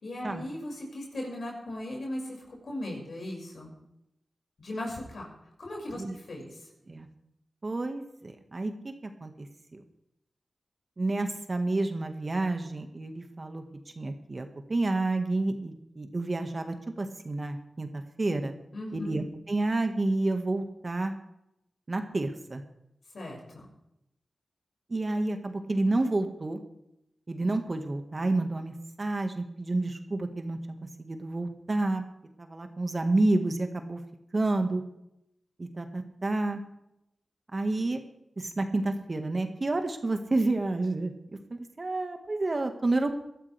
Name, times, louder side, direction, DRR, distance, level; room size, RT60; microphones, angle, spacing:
voice 1, 0.0-3.7 4.6-5.3 5.6-6.6 18.7-19.2 23.1-23.6, left 1 dB, 70° left, -1 dB, 6.0 m, -38 dB
voice 2, 7.6-9.5 9.7-9.8 11.0-13.6 14.0-18.5 18.9-21.1 21.9-22.6 24.9-26.6 27.3-30.6 31.0-32.0 32.4-34.0 34.3-34.8 35.6-36.6 37.5-38.0 38.4-41.1 41.5-43.2, right 2 dB, 45° right, 6 dB, 1.7 m, -29 dB
19.5 x 12.0 x 3.4 m, 0.83 s
cardioid pair, 40°, 0 cm